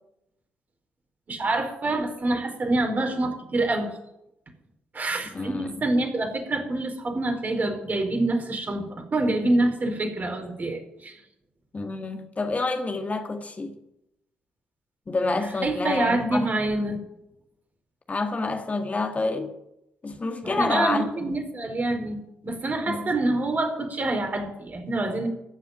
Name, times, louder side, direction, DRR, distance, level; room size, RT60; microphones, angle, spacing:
voice 1, 1.3-3.9 4.9-11.2 15.6-17.0 20.4-25.3, right 2 dB, 40° right, 4.5 m, -26 dB
voice 2, 5.3-5.8 11.7-13.7 15.1-16.5 18.1-19.5 20.0-21.4 22.9-23.1, left 3 dB, 35° left, 1.9 m, -28 dB
15.0 x 6.9 x 9.9 m
hypercardioid pair, 45°, 4 cm